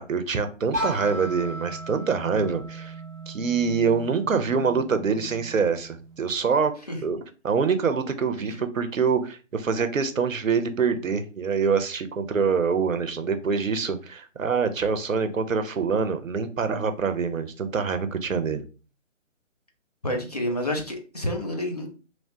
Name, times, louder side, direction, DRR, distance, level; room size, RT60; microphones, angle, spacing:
voice 1, 0.0-2.9 3.3-6.7 7.0-18.7, right 5 dB, 85° right, 9 dB, 0.6 m, -25 dB
sound 1, 0.7-6.5, right 1 dB, 15° right, 0.6 m, -36 dB
voice 2, 20.0-21.9, left 1 dB, 30° left, 2 dB, 0.5 m, -29 dB
2.9 x 2.1 x 2.6 m, 0.35 s
figure-of-eight pair, 145°, 38 cm